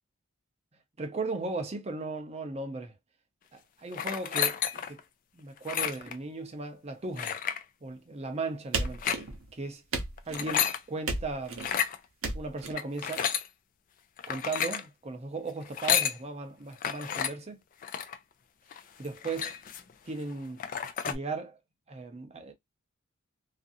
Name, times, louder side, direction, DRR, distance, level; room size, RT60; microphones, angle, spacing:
voice 1, 1.0-2.9 3.5-5.0 5.3-7.3 7.8-9.0 9.5-9.8 10.3-11.7 12.3-13.3 14.3-17.6 19.0-19.5 20.1-20.6 21.0-21.6 21.9-22.5, right 3 dB, 30° right, 0.6 m, -37 dB
sound 1, 3.9-5.0 5.6-6.2 7.2-7.6 8.8-9.2 10.2-10.8 11.5-12.0 12.8-13.5 14.2-14.8 15.6-16.2 16.8-17.3 17.8-18.2 18.7-18.8 19.0-19.9 20.3-20.4 20.6-21.2, left 8 dB, 40° left, 0.3 m, -31 dB
sound 2, 8.7-9.5 9.9-10.5 11.1-11.7 12.2-12.7, right 3 dB, 70° right, 0.7 m, -34 dB
2.5 x 2.4 x 2.6 m
head